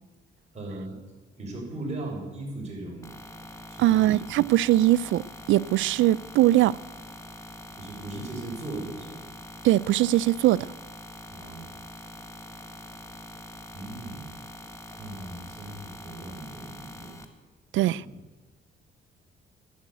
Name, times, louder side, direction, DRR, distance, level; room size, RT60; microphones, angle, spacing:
voice 1, 0.5-1.0 1.4-3.1 3.7-4.2 7.8-9.2 11.3-11.7 12.6-12.7 13.7-14.4 14.9-17.2 17.7-18.2, right 2 dB, 35° right, 6.2 m, -38 dB
sound 1, 3.0-17.2, left 1 dB, 15° left, 1.7 m, -44 dB
voice 2, 3.8-5.2 5.5-6.8 9.6-10.7 17.7-18.0, right 15 dB, 80° right, 0.4 m, -21 dB
12.0 x 11.0 x 8.3 m
cardioid pair, 90°, 20 cm